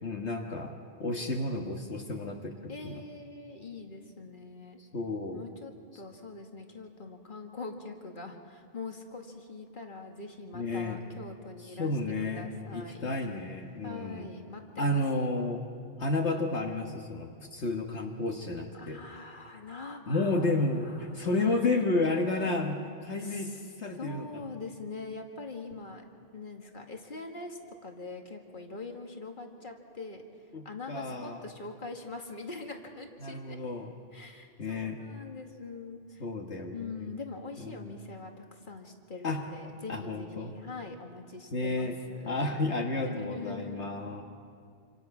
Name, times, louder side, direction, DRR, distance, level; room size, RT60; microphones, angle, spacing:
voice 1, 0.0-2.6 2.8-3.0 4.9-5.4 10.5-11.0 11.6-14.3 14.8-15.6 16.0-19.0 20.1-22.7 23.0-23.5 23.8-24.3 30.5-31.4 33.2-33.9 34.6-35.0 36.2-37.1 37.6-37.9 39.2-39.4 39.9-40.6 41.5-42.0 42.2-44.2, left 2 dB, 70° left, 1 dB, 1.7 m, -31 dB
voice 2, 2.7-4.8 5.3-13.1 13.8-15.0 18.7-20.5 20.8-21.6 23.2-23.7 24.0-26.0 26.3-30.2 30.6-33.6 34.1-36.2 36.7-42.3 43.0-43.9, left 3 dB, 45° left, 2 dB, 2.2 m, -43 dB
27.0 x 26.5 x 5.9 m, 2.4 s
omnidirectional pair, 1.2 m